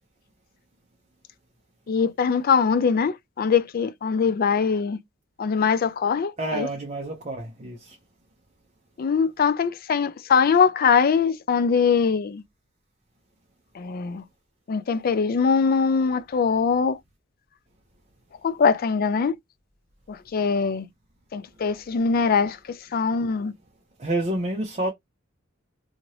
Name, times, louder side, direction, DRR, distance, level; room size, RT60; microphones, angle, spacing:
voice 1, 1.9-5.0 5.4-6.7 9.0-12.4 13.7-14.2 14.7-17.0 18.4-19.3 20.1-20.9 21.3-23.5, left 5 dB, 45° left, 0.4 m, -22 dB
voice 2, 6.4-8.0 24.0-24.9, right 1 dB, 35° right, 0.7 m, -28 dB
2.8 x 2.6 x 3.0 m
head